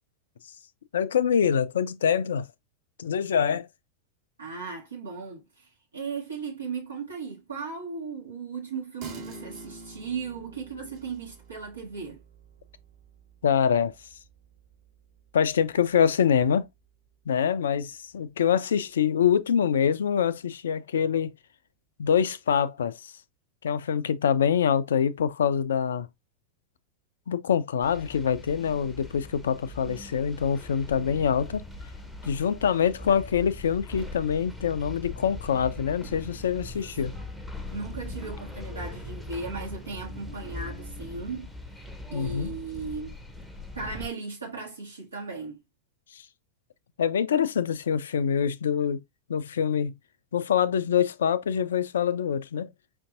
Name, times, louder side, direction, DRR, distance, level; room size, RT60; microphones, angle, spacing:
voice 1, 0.9-2.5 3.0-3.7 13.4-13.9 15.3-16.7 17.3-21.3 22.0-23.1 23.6-26.1 27.3-31.6 32.2-37.1 42.1-42.5 46.1-46.3 47.0-49.0 49.3-49.9 50.3-52.7, left 8 dB, 65° left, 0.3 m, -25 dB
voice 2, 4.4-12.2 36.7-37.1 37.7-41.5 42.1-43.2 43.7-45.6, right 4 dB, 75° right, 1.1 m, -37 dB
sound 1, 9.0-16.0 16.4-16.5, right 3 dB, 45° right, 1.2 m, -48 dB
sound 2, 27.8-44.1, left 2 dB, 5° right, 0.8 m, -40 dB
5.1 x 2.7 x 2.4 m
figure-of-eight pair, 90°, 0 cm